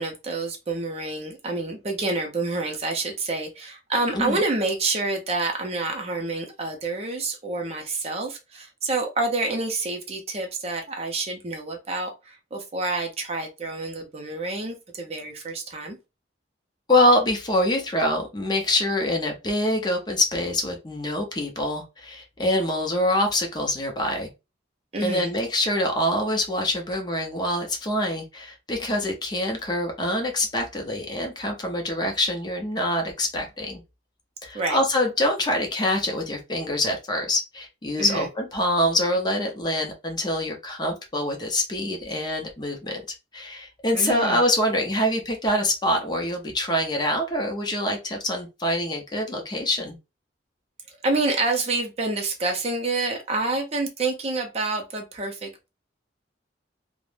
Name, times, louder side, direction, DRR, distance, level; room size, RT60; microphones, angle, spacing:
voice 1, 0.0-16.0 24.9-25.3 34.5-34.8 38.0-38.3 43.9-44.4 51.0-55.7, right 3 dB, 35° right, 0.5 m, -28 dB
voice 2, 16.9-24.3 25.0-33.8 34.4-43.0 43.3-50.0, left 1 dB, 25° left, 0.5 m, -25 dB
2.4 x 2.0 x 3.1 m
head